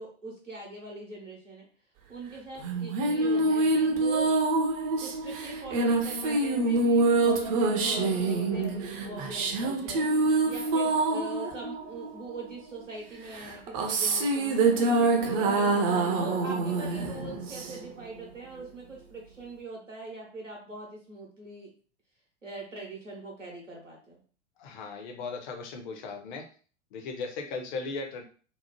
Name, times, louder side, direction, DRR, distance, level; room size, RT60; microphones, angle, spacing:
voice 1, 0.0-1.6 2.1-4.3 5.0-15.6 16.2-21.7 22.4-24.2, right 2 dB, 90° right, -2 dB, 0.9 m, -42 dB
sound 1, 2.6-12.5 13.3-18.0, right 3 dB, 30° right, 0.4 m, -26 dB
voice 2, 24.6-26.5 26.9-28.2, left 4 dB, 40° left, 5 dB, 0.6 m, -37 dB
2.8 x 2.0 x 2.9 m, 0.41 s
figure-of-eight pair, 90°, 36 cm